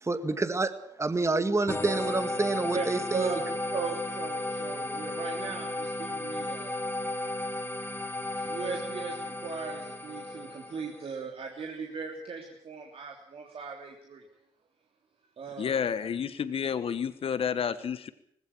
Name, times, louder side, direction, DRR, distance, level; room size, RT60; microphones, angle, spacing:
voice 1, 0.0-3.3, right 3 dB, 25° right, 2.1 m, -28 dB
sound 1, 1.7-11.0, left 2 dB, 20° left, 3.9 m, -34 dB
voice 2, 3.7-6.7 8.3-14.2 15.4-15.8, right 5 dB, 50° right, 3.2 m, -37 dB
voice 3, 15.6-18.1, left 7 dB, 50° left, 1.3 m, -30 dB
20.0 x 16.5 x 8.7 m
hypercardioid pair, 45°, 12 cm